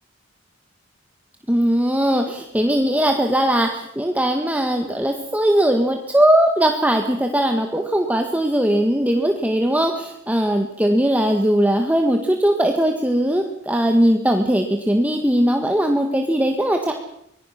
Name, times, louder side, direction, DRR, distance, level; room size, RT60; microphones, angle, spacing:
voice 1, 1.5-16.9, right 1 dB, 10° right, 3 dB, 1.6 m, -19 dB
25.0 x 20.5 x 5.9 m, 0.77 s
head